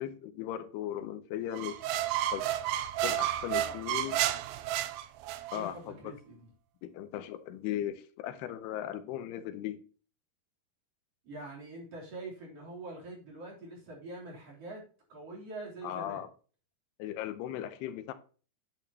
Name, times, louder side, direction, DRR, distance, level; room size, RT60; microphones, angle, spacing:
voice 1, 0.0-1.8 2.3-2.5 3.0-4.2 5.5-6.1 6.8-9.8 15.8-16.3 17.0-18.1, left 11 dB, 80° left, 2.8 m, -37 dB
sound 1, 1.5-5.6, right 12 dB, 80° right, 2.3 m, -31 dB
voice 2, 5.5-6.4 11.2-14.8 15.1-16.2, right 2 dB, 40° right, 4.1 m, -44 dB
10.5 x 9.0 x 2.9 m
omnidirectional pair, 4.7 m